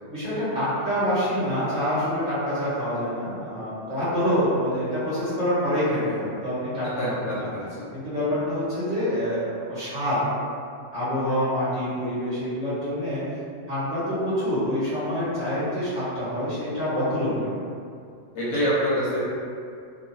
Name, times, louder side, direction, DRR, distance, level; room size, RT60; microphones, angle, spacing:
voice 1, 0.1-6.9 7.2-7.5 7.9-10.2 10.9-13.2 13.7-17.5, equal, 35° right, -13 dB, 1.3 m, -26 dB
voice 2, 7.0-7.9 18.3-19.2, equal, 70° left, -7 dB, 0.9 m, -26 dB
2.4 x 2.2 x 3.0 m, 2.4 s
omnidirectional pair, 1.3 m